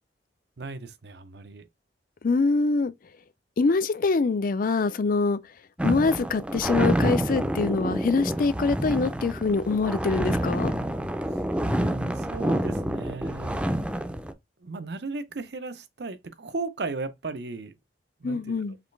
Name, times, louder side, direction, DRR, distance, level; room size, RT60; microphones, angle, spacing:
voice 1, 0.6-1.7 11.6-13.8 14.6-17.7 18.2-18.4, right 3 dB, 65° right, 0.7 m, -36 dB
voice 2, 2.2-2.9 3.6-5.4 5.8-10.7 18.2-18.8, left 4 dB, 50° left, 0.4 m, -24 dB
sound 1, 5.8-14.3, right 1 dB, 5° right, 0.5 m, -28 dB
5.0 x 3.1 x 3.3 m
head